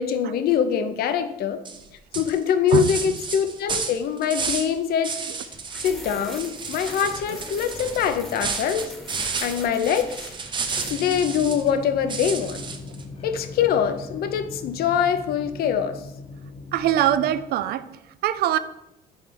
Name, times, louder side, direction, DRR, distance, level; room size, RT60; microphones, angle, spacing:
voice 1, 0.0-1.6 2.2-5.2 5.8-8.9 9.4-10.3 10.9-12.6 13.2-16.0, left 8 dB, 65° left, 9 dB, 0.6 m, -23 dB
sound 1, 1.6-1.8 2.1-4.7 5.0-6.0 6.2-11.7 12.1-13.0, right 5 dB, 30° right, 0.7 m, -32 dB
sound 2, 5.5-10.9, equal, ahead, 1.0 m, -41 dB
sound 3, 10.8-17.4, left 3 dB, 35° left, 0.9 m, -39 dB
voice 2, 16.7-17.8 18.2-18.6, right 11 dB, 65° right, 14 dB, 0.4 m, -22 dB
5.5 x 3.2 x 5.2 m, 0.86 s
cardioid pair, 110°, 17 cm